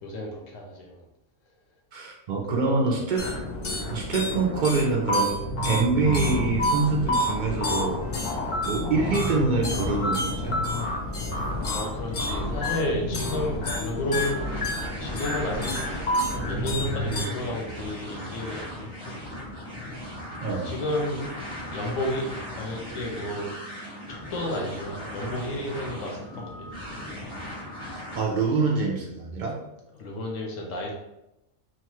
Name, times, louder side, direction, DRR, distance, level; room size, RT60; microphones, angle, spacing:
voice 1, 0.0-1.1 2.5-3.1 3.7-3.9 11.7-14.7 15.0-19.2 20.6-21.3 21.7-23.5 24.1-27.1 29.9-30.9, left 1 dB, 75° left, 0 dB, 1.0 m, -32 dB
voice 2, 1.9-3.2 3.8-5.4 5.6-8.0 8.6-10.6 20.4-20.7 28.1-29.5, right 4 dB, 65° right, -2 dB, 0.4 m, -25 dB
sound 1, 3.2-17.3, left 1 dB, 55° left, 0.7 m, -29 dB
sound 2, 14.1-28.2, left 1 dB, 25° left, 0.7 m, -38 dB
2.9 x 2.2 x 2.9 m, 0.89 s
omnidirectional pair, 1.4 m